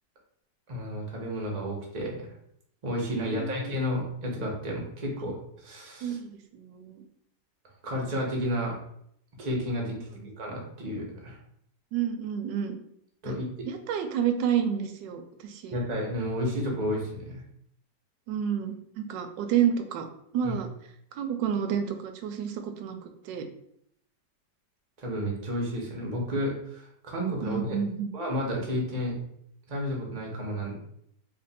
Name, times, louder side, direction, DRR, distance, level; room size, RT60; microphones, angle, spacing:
voice 1, 0.7-2.3 2.8-5.3 5.6-6.2 7.8-8.7 9.4-10.0 10.4-11.4 13.2-13.7 15.7-17.4 20.4-20.5 25.0-27.8 28.1-29.2 29.7-30.7, equal, 35° right, -1 dB, 0.8 m, -31 dB
voice 2, 3.3-3.7 6.0-7.0 10.2-10.3 11.9-12.8 13.7-15.8 18.3-20.1 20.3-20.7 21.1-23.0 23.3-23.5 27.4-28.1, right 8 dB, 90° right, 7 dB, 1.3 m, -29 dB
3.2 x 2.6 x 4.0 m, 0.72 s
omnidirectional pair, 1.9 m